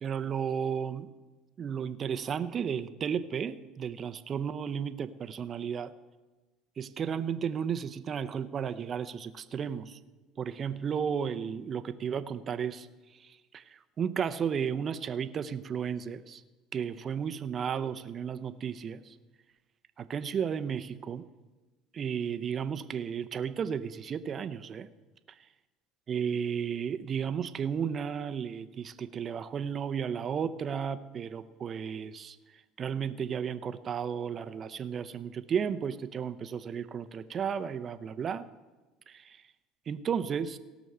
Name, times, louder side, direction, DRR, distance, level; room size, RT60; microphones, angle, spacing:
voice 1, 0.0-1.1 1.6-5.9 6.8-10.0 10.4-12.9 13.1-16.4 16.7-19.1 20.0-21.3 21.9-24.9 25.3-25.4 26.1-32.4 32.8-38.4 39.1-39.4 39.9-40.6, right 7 dB, 40° right, 12 dB, 0.7 m, -33 dB
17.5 x 6.2 x 6.8 m, 1.2 s
supercardioid pair, 95°, 0 cm